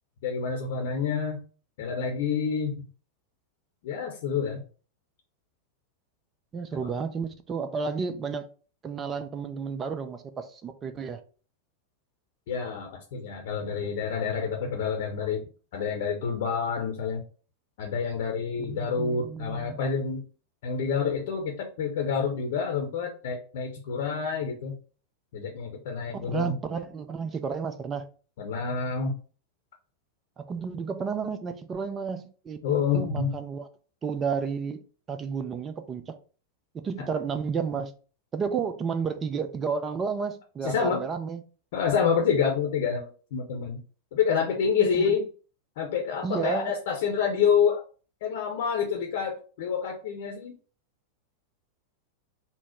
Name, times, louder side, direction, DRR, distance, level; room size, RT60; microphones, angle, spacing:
voice 1, 0.2-1.4 1.8-2.8 3.8-4.6 6.7-6.9 12.5-17.2 17.8-20.2 20.6-24.8 25.3-26.5 28.4-29.2 32.6-33.3 40.6-41.0 41.7-43.8 44.1-45.3 45.8-47.8 48.2-50.5, left 6 dB, 55° left, 0.7 m, -28 dB
voice 2, 6.5-8.5 8.8-11.2 18.7-19.8 26.1-28.1 30.4-33.7 34.0-34.8 35.1-36.2 36.7-37.9 38.3-41.4 44.8-45.1 46.2-46.7, right 6 dB, 25° right, 0.5 m, -32 dB
4.1 x 2.0 x 4.3 m
figure-of-eight pair, 90°, 0 cm